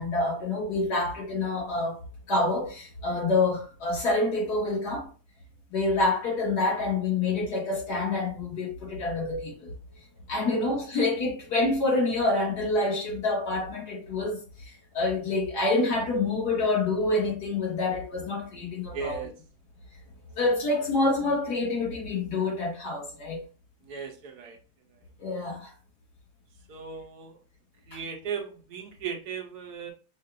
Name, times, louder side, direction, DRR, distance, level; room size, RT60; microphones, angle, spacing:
voice 1, 0.0-2.0 2.3-5.1 5.7-9.7 10.3-14.4 14.9-19.2 20.4-23.4 25.2-25.7 27.9-28.0, left 2 dB, 70° left, 2.2 m, -27 dB
voice 2, 18.9-19.3 23.9-24.6 26.7-27.4 27.9-29.9, right 6 dB, 70° right, 1.3 m, -36 dB
6.4 x 2.5 x 2.5 m
omnidirectional pair, 1.8 m